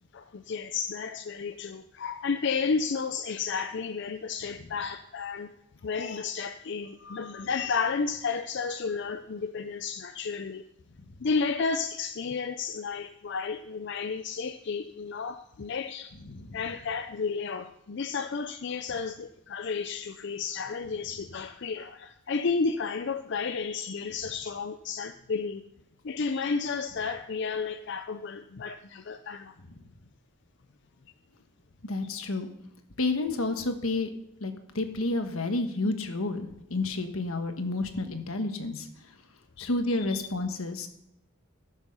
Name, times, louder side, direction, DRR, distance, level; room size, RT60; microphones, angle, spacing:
voice 1, 0.1-5.5 5.8-10.6 11.2-16.1 16.5-25.6 26.0-29.5 39.6-40.2, left 5 dB, 55° left, 8 dB, 0.5 m, -32 dB
voice 2, 31.8-32.5 33.0-34.1 34.4-38.9 39.6-40.9, left 2 dB, 80° left, 7 dB, 1.4 m, -30 dB
14.0 x 7.3 x 5.6 m, 0.80 s
head